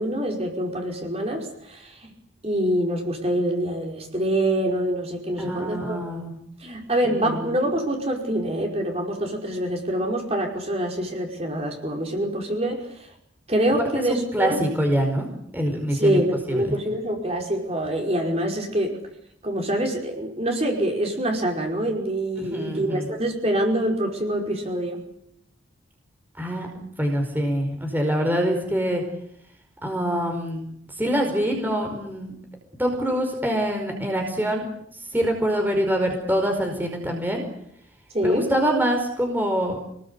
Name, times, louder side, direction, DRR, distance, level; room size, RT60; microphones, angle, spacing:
voice 1, 0.0-2.1 2.4-6.0 6.6-12.9 13.5-14.6 16.0-19.0 19.4-25.0 38.1-38.5, right 1 dB, 30° right, 1 dB, 5.1 m, -25 dB
voice 2, 5.4-6.4 7.1-7.4 14.1-15.3 15.5-16.2 16.5-16.8 22.4-23.0 26.4-26.7 27.0-29.0 29.8-30.6 31.0-32.3 32.8-34.6 35.1-37.4 38.2-39.8, equal, 10° right, 3 dB, 4.9 m, -25 dB
28.5 x 20.5 x 8.3 m, 0.73 s
head